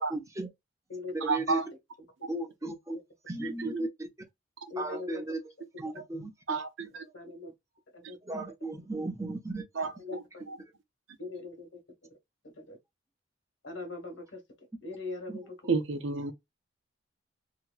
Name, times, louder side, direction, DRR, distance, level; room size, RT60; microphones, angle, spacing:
voice 1, 0.1-0.5 1.2-1.6 2.3-3.0 3.3-4.1 4.8-5.5 5.8-6.3 8.2-9.6 10.6-10.7 15.3-15.5, right 2 dB, 15° right, 0.7 m, -35 dB
voice 2, 1.2-1.7 2.2-2.3 3.4-3.8 6.5-7.1 8.0-8.1 9.7-10.6 15.7-16.3, right 4 dB, 80° right, 0.7 m, -32 dB
voice 3, 4.7-5.1 7.1-7.5 7.9-8.2 10.1-10.4 11.2-11.7 12.6-12.8 13.6-14.4 14.8-15.4, left 3 dB, 80° left, 1.3 m, -40 dB
3.0 x 2.8 x 2.2 m
head